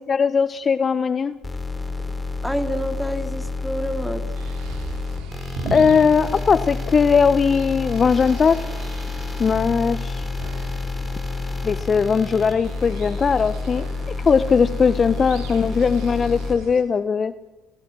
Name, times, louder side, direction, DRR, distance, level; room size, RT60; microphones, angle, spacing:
voice 1, 0.1-1.4 5.7-8.6 9.4-10.3 11.6-17.3, left 6 dB, 35° left, 15 dB, 0.9 m, -19 dB
sound 1, 1.4-16.5, left 3 dB, 20° left, 4.8 m, -29 dB
voice 2, 2.4-4.3, equal, ahead, 7 dB, 2.9 m, -27 dB
sound 2, 4.3-16.8, right 5 dB, 65° right, 4.3 m, -39 dB
30.0 x 18.5 x 6.1 m, 1.1 s
hypercardioid pair, 60°, 0 cm